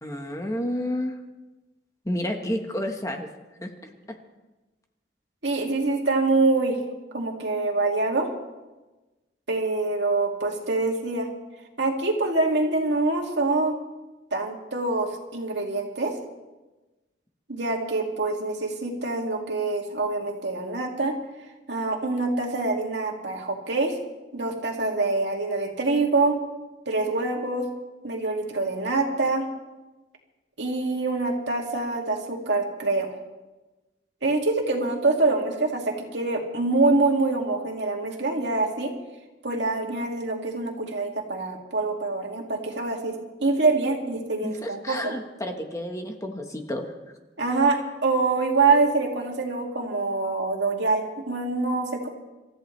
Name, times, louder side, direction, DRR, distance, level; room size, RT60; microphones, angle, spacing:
voice 1, 0.0-1.2 2.0-3.3 3.6-3.7 44.4-46.8, left 1 dB, 20° left, 3 dB, 1.3 m, -30 dB
voice 2, 5.4-6.8 7.1-8.3 9.5-11.3 11.8-13.8 14.3-16.1 17.5-21.2 21.7-23.9 24.3-26.4 26.9-27.7 28.0-29.4 30.6-33.1 34.2-38.9 39.4-43.1 43.4-45.1 47.4-52.1, right 3 dB, 75° right, 1 dB, 2.4 m, -25 dB
27.5 x 14.0 x 3.3 m, 1.1 s
head